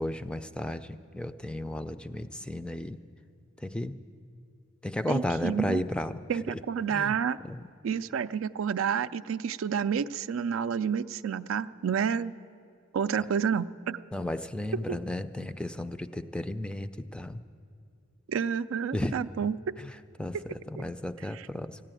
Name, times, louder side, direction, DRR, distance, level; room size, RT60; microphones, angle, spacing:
voice 1, 0.0-3.0 3.6-3.9 4.8-6.2 6.9-7.1 7.5-7.6 14.1-17.4 18.9-19.2 19.8-19.9 20.2-20.4 20.7-21.8, left 1 dB, 5° left, 10 dB, 0.3 m, -33 dB
voice 2, 5.1-5.8 6.3-7.4 7.8-12.3 12.9-14.0 14.9-15.0 18.3-19.6 21.3-21.5, right 7 dB, 80° right, 13 dB, 0.4 m, -29 dB
15.0 x 9.9 x 9.0 m, 2.5 s
head